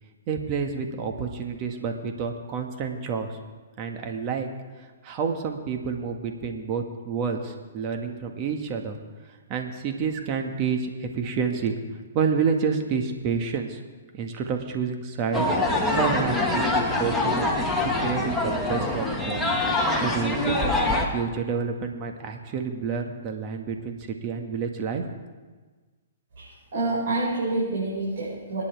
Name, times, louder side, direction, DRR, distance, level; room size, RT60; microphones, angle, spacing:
voice 1, 0.3-3.3 3.8-4.5 5.0-9.0 9.5-11.8 12.1-13.8 14.1-19.4 20.0-20.7 21.1-25.1, right 6 dB, 35° right, 4 dB, 1.8 m, -29 dB
sound 1, 15.3-21.1, left 2 dB, 5° left, 1.9 m, -24 dB
voice 2, 26.4-28.6, right 2 dB, 60° right, -7 dB, 5.8 m, -28 dB
27.0 x 9.9 x 3.6 m, 1.4 s
hypercardioid pair, 130°, 0 cm